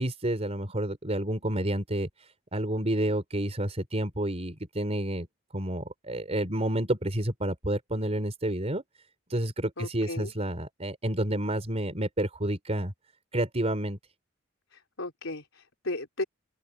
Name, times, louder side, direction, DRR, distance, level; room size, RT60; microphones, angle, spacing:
voice 1, 0.0-5.3 5.5-8.8 9.3-12.9 13.3-14.0, right 1 dB, 35° right, 4.3 m, -30 dB
voice 2, 9.8-10.3 14.7-16.2, left 2 dB, 85° left, 3.9 m, -35 dB
open air
head